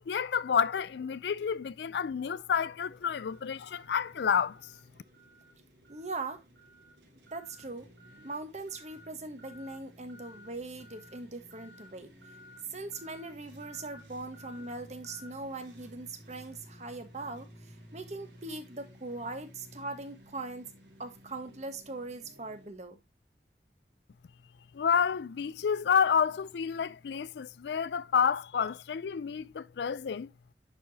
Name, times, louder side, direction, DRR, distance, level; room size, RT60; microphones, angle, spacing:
voice 1, 0.1-4.6 24.7-30.3, left 7 dB, 70° left, 0.4 m, -29 dB
sound 1, 2.9-22.7, equal, 80° right, 3.2 m, -54 dB
voice 2, 5.9-6.4 7.3-7.9 8.2-12.1 12.7-20.7 21.0-23.0, right 2 dB, 40° right, 1.2 m, -40 dB
10.0 x 4.9 x 2.7 m
head